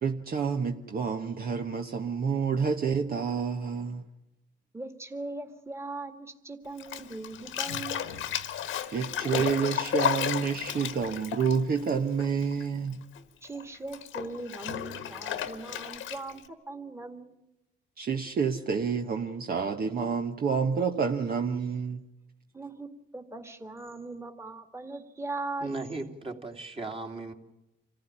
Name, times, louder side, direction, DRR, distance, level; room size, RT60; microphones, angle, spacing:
voice 1, 0.0-4.0 8.9-12.9 18.0-22.0, right 6 dB, 50° right, 1.2 m, -29 dB
voice 2, 4.7-8.3 13.4-17.5 22.5-25.7, right 2 dB, 15° right, 2.1 m, -40 dB
Bathtub (filling or washing), 6.8-12.6 12.9-16.5, left 10 dB, 80° left, 1.5 m, -33 dB
voice 3, 25.6-27.3, right 3 dB, 30° right, 2.6 m, -36 dB
26.0 x 15.5 x 10.0 m
cardioid pair, 90°, 20 cm